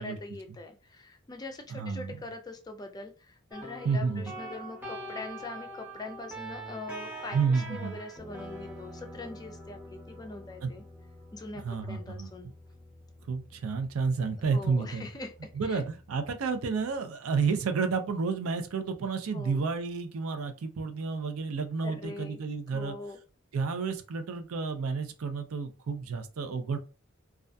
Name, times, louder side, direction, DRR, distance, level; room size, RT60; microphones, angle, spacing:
voice 1, 0.0-10.8 11.3-12.5 14.5-15.3 15.6-15.8 19.3-19.6 21.8-22.4 22.7-23.2, left 2 dB, 20° left, 5 dB, 0.3 m, -42 dB
voice 2, 1.7-2.2 3.8-4.2 7.3-7.9 10.6-10.7 11.5-12.3 13.3-15.0 15.6-23.0 23.5-26.8, right 5 dB, 90° right, 7 dB, 0.4 m, -30 dB
sound 1, 3.5-17.0, right 1 dB, 10° right, 0.8 m, -45 dB
2.3 x 2.2 x 2.5 m, 0.33 s
head